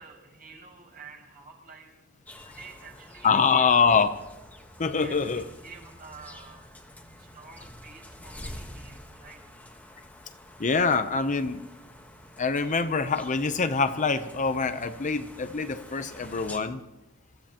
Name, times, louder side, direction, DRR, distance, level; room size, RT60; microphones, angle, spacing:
voice 1, 0.0-1.9 2.5-3.7 5.0-6.6 7.2-9.6, right 4 dB, 45° right, -2 dB, 5.9 m, -49 dB
sound 1, 2.3-16.6, left 1 dB, 5° left, 1.3 m, -47 dB
voice 2, 3.2-4.2 4.8-5.5 10.6-11.6 12.4-16.8, left 5 dB, 35° left, 9 dB, 0.7 m, -24 dB
27.5 x 15.5 x 3.0 m, 1.0 s
head